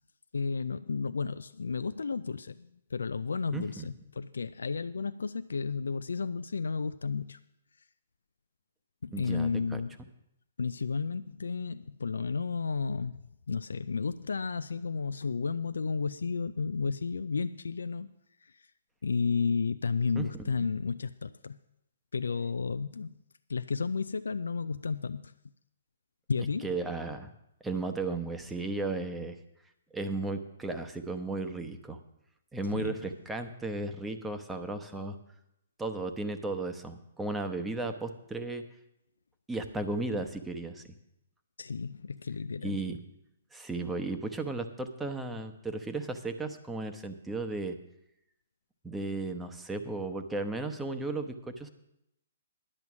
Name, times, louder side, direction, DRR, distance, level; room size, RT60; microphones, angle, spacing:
voice 1, 0.3-7.4 9.0-10.0 10.6-13.2 13.5-18.1 18.4-18.7 19.0-21.6 22.1-23.2 23.5-25.3 26.3-26.8 32.7-33.1 41.6-42.9, left 5 dB, 75° left, 11 dB, 0.4 m, -32 dB
voice 2, 3.5-3.9 9.1-9.8 20.2-20.3 20.6-20.7 26.6-27.3 27.6-29.4 29.9-32.0 32.5-35.2 35.8-38.6 39.5-40.9 42.6-43.0 43.5-47.8 48.8-51.7, right 2 dB, 10° right, 7 dB, 0.9 m, -35 dB
11.0 x 8.1 x 6.1 m, 0.82 s
figure-of-eight pair, 125°, 0 cm